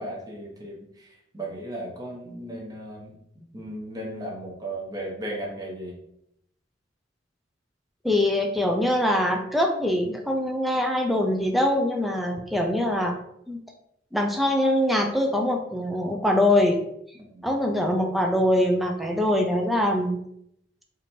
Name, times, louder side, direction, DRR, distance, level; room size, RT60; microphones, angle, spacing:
voice 1, 0.0-3.1 3.5-5.9 17.3-17.5, right 1 dB, 20° right, -2 dB, 0.9 m, -36 dB
voice 2, 8.0-13.2 13.5-13.6 14.1-16.8 17.4-20.2, left 1 dB, ahead, 2 dB, 0.4 m, -23 dB
2.9 x 2.6 x 4.3 m, 0.75 s
head